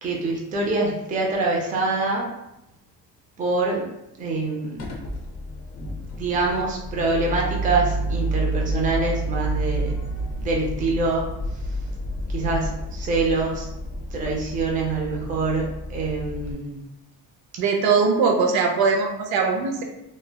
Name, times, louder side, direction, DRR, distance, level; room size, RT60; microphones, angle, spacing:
voice 1, 0.0-2.3 3.4-3.8 4.2-4.8 6.2-10.0 10.4-11.3 12.3-13.7 14.1-16.8, right 3 dB, 20° right, -2 dB, 0.4 m, -25 dB
sound 1, 4.8-16.5, right 1 dB, 45° left, 0.6 m, -29 dB
voice 2, 17.6-19.8, right 5 dB, 70° right, 2 dB, 0.6 m, -21 dB
3.1 x 2.1 x 2.2 m, 0.88 s
cardioid pair, 135°, 39 cm